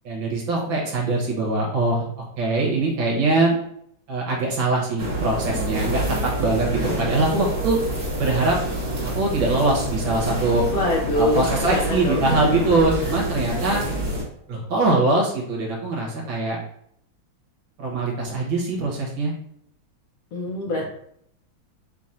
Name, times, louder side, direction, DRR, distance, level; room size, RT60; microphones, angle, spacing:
voice 1, 0.1-3.6 4.1-7.8 8.2-8.6 9.1-10.6 11.2-13.8 14.5-16.6 17.8-19.3 20.7-20.8, right 2 dB, 80° right, -2 dB, 1.9 m, -22 dB
sound 1, 5.0-14.2, right 1 dB, 55° right, 1.8 m, -27 dB
voice 2, 10.7-12.6 13.0-13.1 20.3-20.9, left 1 dB, 75° left, -1 dB, 0.8 m, -25 dB
3.9 x 2.6 x 4.2 m, 0.69 s
omnidirectional pair, 2.2 m